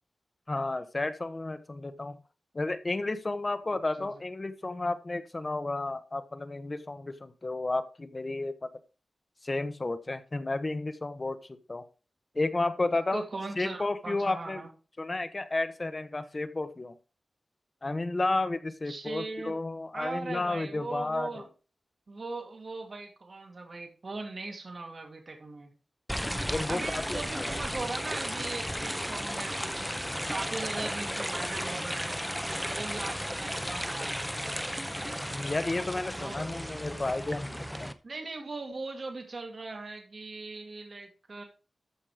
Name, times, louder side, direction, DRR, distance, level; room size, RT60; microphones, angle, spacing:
voice 1, 0.5-2.2 2.5-8.7 9.4-11.8 12.3-13.2 13.6-14.6 15.0-16.9 17.8-21.4 26.5-27.5 35.3-37.9, left 2 dB, 30° left, 10 dB, 1.1 m, -32 dB
voice 2, 13.1-14.7 18.9-19.5 19.9-21.5 22.1-25.7 26.7-29.9 30.3-32.3 32.7-34.1 36.1-36.5 38.0-41.4, right 3 dB, 45° right, 3 dB, 2.5 m, -39 dB
sound 1, 26.1-37.9, equal, ahead, 0.8 m, -34 dB
13.5 x 5.5 x 5.0 m, 0.35 s
wide cardioid pair, 145°, 0 cm